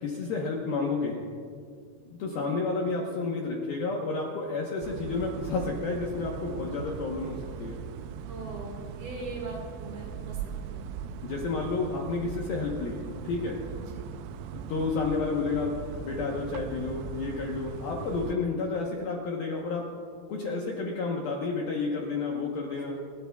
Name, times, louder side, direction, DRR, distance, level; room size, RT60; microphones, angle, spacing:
voice 1, 0.0-1.2 2.1-7.8 11.2-13.6 14.5-19.9 20.3-23.0, left 4 dB, 70° left, -1 dB, 2.3 m, -31 dB
voice 2, 2.3-2.6 8.3-10.9 13.8-14.0 22.7-22.8, right 2 dB, 60° right, 0 dB, 3.1 m, -41 dB
sound 1, 4.8-18.3, right 7 dB, 80° right, 2.9 m, -39 dB
29.5 x 13.0 x 2.3 m, 2.2 s
omnidirectional pair, 5.7 m